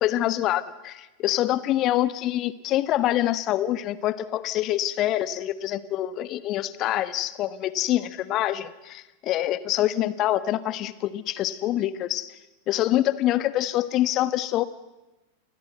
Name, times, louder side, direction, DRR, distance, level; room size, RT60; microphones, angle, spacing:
voice 1, 0.0-12.3 12.7-14.6, left 13 dB, 35° left, 16 dB, 1.3 m, -25 dB
29.0 x 21.0 x 7.9 m, 1.1 s
figure-of-eight pair, 90°, 0 cm